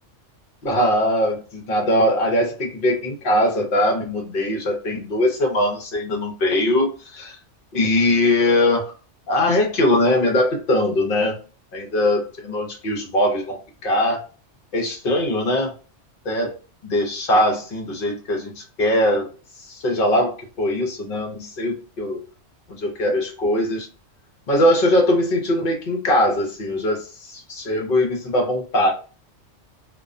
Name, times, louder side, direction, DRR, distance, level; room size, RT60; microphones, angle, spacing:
voice 1, 0.6-7.4 7.7-8.9 9.3-11.3 11.7-13.6 13.8-14.2 14.7-15.7 16.2-16.5 16.8-19.3 19.6-22.2 22.7-23.9 24.5-28.9, left 1 dB, 55° left, 2 dB, 0.8 m, -21 dB
2.3 x 2.2 x 2.5 m, 0.36 s
omnidirectional pair, 1.2 m